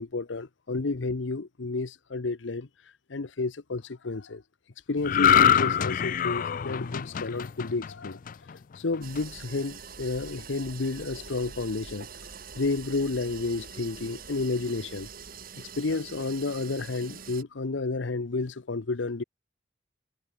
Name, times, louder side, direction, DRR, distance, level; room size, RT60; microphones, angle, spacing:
voice 1, 0.0-2.7 3.1-4.4 4.9-8.2 8.8-12.1 12.6-15.1 15.8-19.2, left 3 dB, 80° left, 0.8 m, -31 dB
sound 1, 5.0-8.5 8.9-9.2, left 9 dB, 45° left, 0.4 m, -24 dB
sound 2, 9.0-17.4, right 6 dB, 50° right, 4.8 m, -44 dB
head